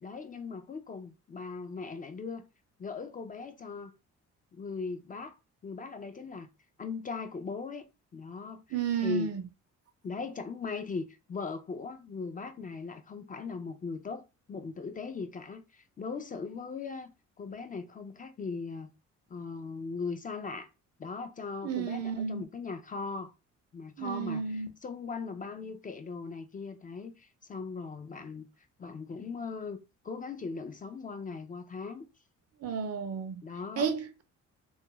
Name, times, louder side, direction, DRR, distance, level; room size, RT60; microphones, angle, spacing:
voice 1, 0.0-2.4 2.8-3.9 4.5-5.4 5.6-6.5 6.8-7.8 8.1-8.8 9.0-9.3 10.0-14.2 14.5-17.1 17.4-18.9 19.3-20.7 21.0-23.3 23.7-28.5 28.8-29.8 30.0-32.1 33.4-33.9, left 4 dB, 30° left, 0.3 m, -39 dB
voice 2, 8.7-9.4 21.6-22.4 24.0-24.7 32.6-33.4 33.8-34.2, right 6 dB, 55° right, 0.6 m, -32 dB
2.5 x 2.4 x 2.9 m
cardioid pair, 90°, 30 cm